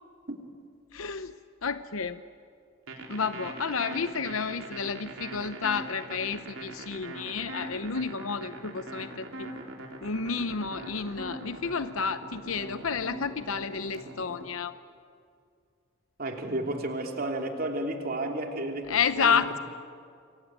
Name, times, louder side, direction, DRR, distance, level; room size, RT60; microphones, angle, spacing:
voice 1, 0.9-1.3 1.6-2.2 3.1-9.5 10.0-14.8 18.9-19.6, left 5 dB, 90° left, 11 dB, 0.8 m, -30 dB
sound 1, 2.9-14.4, right 2 dB, 80° right, 4.3 m, -41 dB
voice 2, 16.2-19.5, right 1 dB, 45° right, 3 dB, 3.2 m, -32 dB
28.0 x 23.0 x 9.1 m, 2.3 s
head